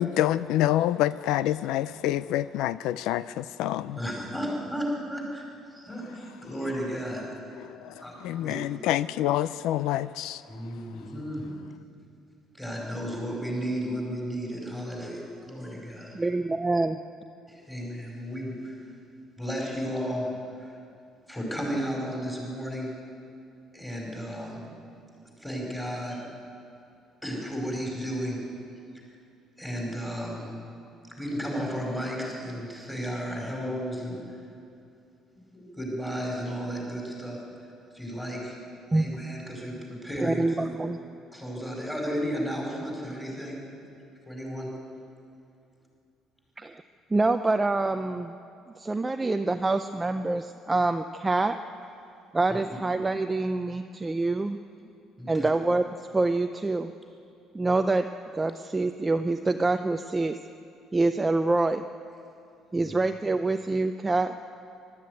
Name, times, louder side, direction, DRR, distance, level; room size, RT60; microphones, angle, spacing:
voice 1, 0.0-4.0 7.6-10.4, left 13 dB, 85° left, 0.4 m, -27 dB
voice 2, 4.0-5.5 5.7-7.3 8.0-8.6 10.5-11.6 12.6-16.2 17.5-18.8 19.4-20.7 21.3-22.9 23.7-24.6 25.4-26.2 27.2-28.4 29.6-30.5 31.2-34.2 35.3-37.4 37.9-38.6 38.9-40.7 41.3-43.6 44.3-44.7 55.2-55.5 62.8-63.0, equal, 5° left, 4.9 m, -33 dB
voice 3, 16.1-17.0 38.9-39.1 40.2-41.0 46.6-46.8 47.1-48.4 48.8-51.6 52.3-54.6 55.3-55.8 56.1-56.9 57.5-58.1 58.3-60.4 60.9-61.8 62.7-64.3, right 2 dB, 10° right, 0.5 m, -26 dB
21.5 x 13.0 x 9.6 m
cardioid pair, 165°, 0 cm